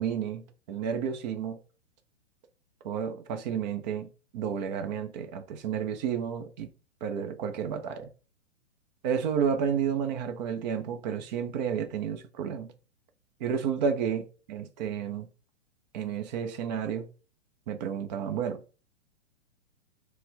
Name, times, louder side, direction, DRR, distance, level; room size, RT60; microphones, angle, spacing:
voice 1, 0.0-1.6 2.8-4.1 4.3-6.7 7.0-8.1 9.0-12.7 13.4-15.3 15.9-17.1 17.7-18.6, right 7 dB, 35° right, 0.7 m, -31 dB
4.2 x 2.2 x 4.1 m
figure-of-eight pair, 115°, 36 cm